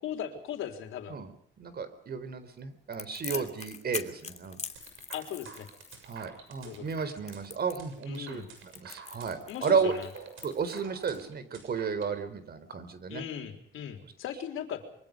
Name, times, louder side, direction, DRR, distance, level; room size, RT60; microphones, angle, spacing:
voice 1, 0.0-1.1 3.2-3.5 5.1-5.7 6.6-6.8 8.1-8.5 9.5-10.1 13.1-14.8, left 9 dB, 85° left, 5 dB, 3.9 m, -38 dB
voice 2, 1.6-4.6 6.0-9.9 10.4-13.2, right 5 dB, 50° right, 12 dB, 4.1 m, -33 dB
Crackle, 2.9-11.2, left 5 dB, 35° left, 2.9 m, -43 dB
sound 1, 4.8-12.1, right 6 dB, 80° right, 6.9 m, -50 dB
25.5 x 23.5 x 5.2 m, 0.72 s
cardioid pair, 90°, 20 cm